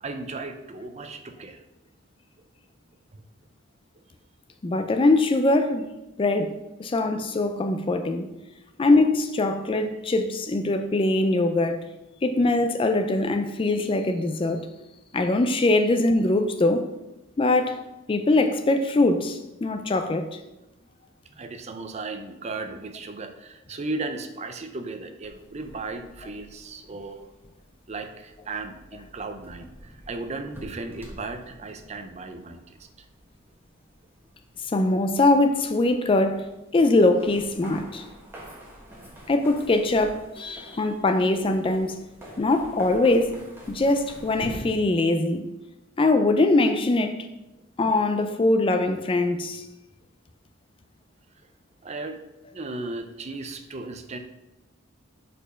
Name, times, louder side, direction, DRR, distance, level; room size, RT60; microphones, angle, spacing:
voice 1, 0.0-1.6 3.1-3.2 21.3-27.2 27.9-32.8 51.8-52.2 52.5-54.2, right 3 dB, 30° right, 0.5 m, -36 dB
voice 2, 4.6-5.9 6.2-8.3 8.8-11.8 12.2-14.7 15.1-16.9 17.4-20.4 34.6-38.0 39.3-42.0 42.4-43.4 43.7-45.5 46.0-47.3 47.8-49.6, left 2 dB, 25° left, 0.3 m, -22 dB
sound 1, 25.2-44.6, equal, 10° right, 1.4 m, -47 dB
5.0 x 4.4 x 5.5 m
head